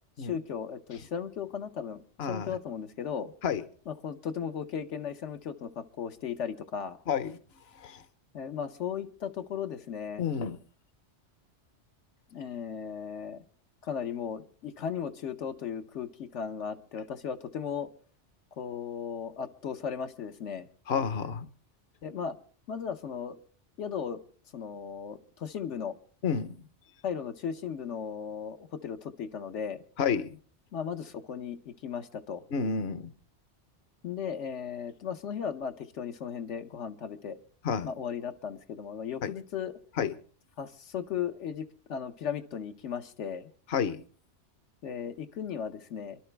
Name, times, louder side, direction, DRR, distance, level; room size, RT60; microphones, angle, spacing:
voice 1, 0.2-2.0 2.3-3.3 3.9-7.0 8.3-10.2 12.3-13.4 13.8-17.9 18.6-20.7 22.0-22.4 22.7-23.4 23.8-24.2 24.5-25.9 27.0-29.8 30.7-32.4 34.0-37.4 37.8-39.7 40.6-43.5 44.8-46.2, left 7 dB, 80° left, 1.2 m, -36 dB
voice 2, 2.2-2.5 3.4-3.6 7.1-7.3 7.8-8.0 10.2-10.6 20.9-21.5 26.2-26.6 30.0-30.3 32.5-33.1 37.6-37.9 39.2-39.3 40.0-40.1 43.7-44.0, left 6 dB, 60° left, 1.1 m, -29 dB
25.5 x 12.0 x 3.3 m
omnidirectional pair, 1.2 m